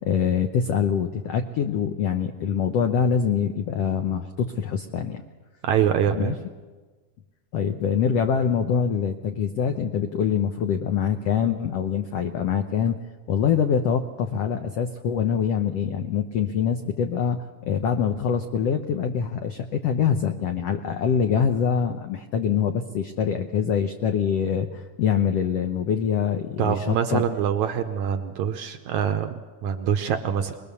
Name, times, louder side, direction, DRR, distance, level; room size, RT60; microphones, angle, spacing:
voice 1, 0.0-5.2 6.2-6.3 7.5-13.0 13.3-27.3, left 7 dB, 80° left, 6 dB, 1.4 m, -24 dB
voice 2, 5.6-6.3 26.6-30.5, right 8 dB, 70° right, 7 dB, 1.9 m, -24 dB
22.5 x 21.0 x 7.0 m, 1.4 s
omnidirectional pair, 4.0 m